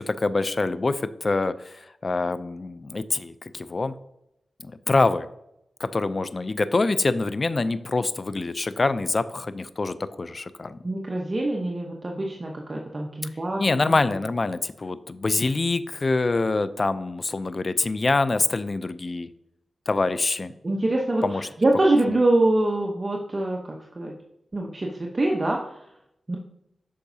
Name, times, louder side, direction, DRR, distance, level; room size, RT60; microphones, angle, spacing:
voice 1, 0.0-3.9 4.6-5.3 5.8-10.8 13.6-19.3 19.9-20.5 21.2-21.5, left 3 dB, 40° left, 13 dB, 0.4 m, -25 dB
voice 2, 10.8-13.6 20.6-21.2 21.6-24.1 24.5-25.6 26.3-26.4, right 2 dB, 35° right, 0 dB, 0.8 m, -24 dB
8.5 x 5.8 x 2.7 m, 0.81 s
wide cardioid pair, 75°, 0 cm